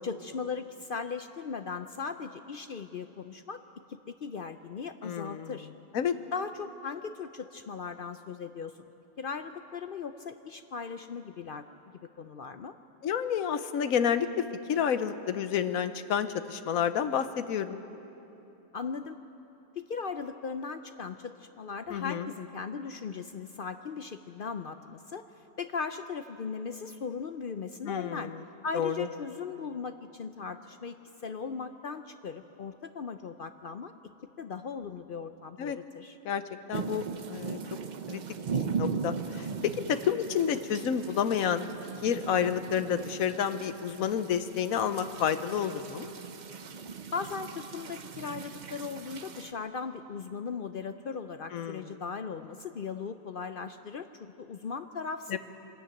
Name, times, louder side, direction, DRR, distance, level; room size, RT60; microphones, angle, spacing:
voice 1, 0.0-3.6 3.9-5.7 6.3-8.8 9.2-11.6 12.0-12.7 18.7-19.2 19.8-25.2 25.6-28.3 28.6-33.9 34.4-36.2 47.1-55.4, left 5 dB, 60° left, 9 dB, 0.6 m, -38 dB
voice 2, 5.0-5.6 5.9-6.2 13.0-17.8 21.9-22.3 27.8-28.4 28.7-29.1 35.6-35.8 36.2-36.4 36.7-37.0 37.3-37.6 38.1-38.2 38.5-41.7 42.0-46.1 51.5-52.0 55.3-55.4, left 8 dB, 75° left, 11 dB, 1.3 m, -30 dB
sound 1, 36.7-49.5, right 5 dB, 45° right, 0.6 m, -38 dB
24.0 x 13.5 x 9.0 m, 3.0 s
omnidirectional pair, 1.5 m